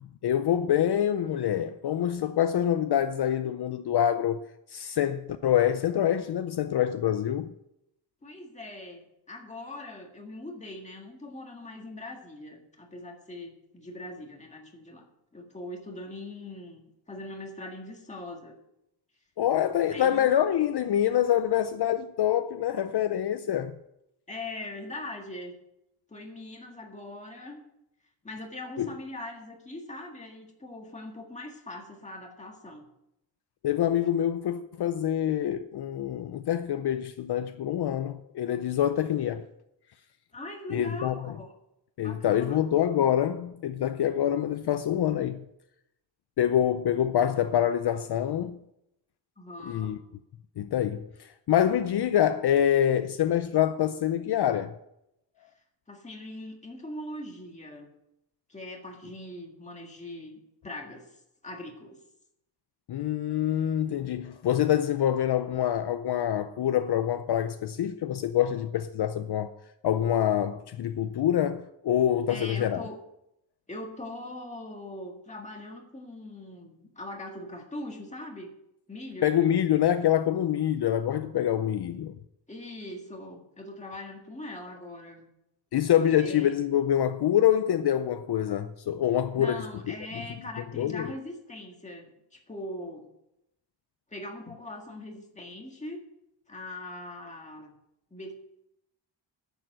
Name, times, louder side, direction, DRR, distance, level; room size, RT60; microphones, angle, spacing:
voice 1, 0.2-4.4 4.7-7.5 19.4-23.7 28.8-28.9 33.6-39.5 40.7-41.3 42.0-45.4 46.4-48.6 49.6-50.0 50.6-54.7 62.9-69.5 69.8-72.9 79.2-82.2 85.7-89.9 90.8-91.1, left 10 dB, 60° left, 0.6 m, -26 dB
voice 2, 8.2-15.1 15.3-18.6 19.9-20.4 24.3-25.5 26.1-27.6 28.2-32.8 40.3-41.5 42.0-42.8 49.4-50.0 55.9-57.9 58.5-62.0 72.3-73.0 73.7-78.5 78.9-79.3 82.5-85.2 86.2-86.5 89.4-93.1 94.1-96.0 96.5-97.8 98.1-98.3, left 1 dB, 15° left, 1.8 m, -41 dB
10.0 x 7.0 x 7.7 m
wide cardioid pair, 170°, 44 cm